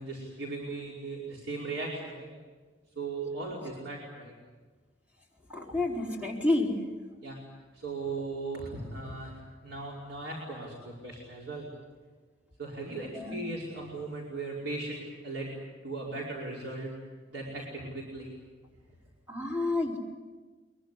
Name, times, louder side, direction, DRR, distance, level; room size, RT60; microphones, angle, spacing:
voice 1, 0.0-2.3 3.0-4.3 7.2-7.4 7.7-9.3 9.6-11.7 12.6-15.5 15.8-16.9 17.3-18.3, right 3 dB, 90° right, -3 dB, 5.1 m, -37 dB
voice 2, 5.5-6.7 13.1-13.4 19.3-20.0, left 2 dB, 10° right, -2 dB, 4.5 m, -29 dB
24.0 x 22.5 x 8.3 m, 1.3 s
head